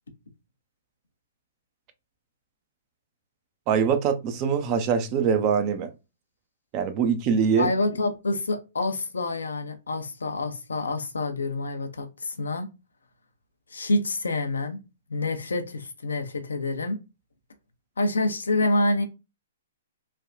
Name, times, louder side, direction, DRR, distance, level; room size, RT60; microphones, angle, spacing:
voice 1, 3.7-5.9 6.7-7.7, right 6 dB, 35° right, 0.5 m, -23 dB
voice 2, 7.6-12.7 13.7-14.8 15.1-17.0 18.0-19.0, left 2 dB, 80° left, 0.5 m, -27 dB
3.2 x 2.2 x 2.4 m
figure-of-eight pair, 120°, 0 cm